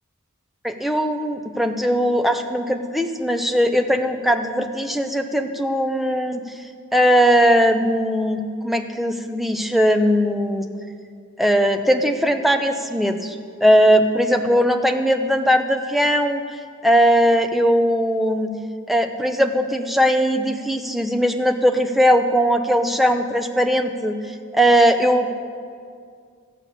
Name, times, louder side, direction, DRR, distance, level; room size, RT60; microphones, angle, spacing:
voice 1, 0.6-6.4 6.9-10.7 11.4-13.4 13.6-16.4 16.8-18.5 18.9-25.3, equal, ahead, 5 dB, 0.5 m, -19 dB
13.5 x 5.6 x 8.2 m, 2.2 s
head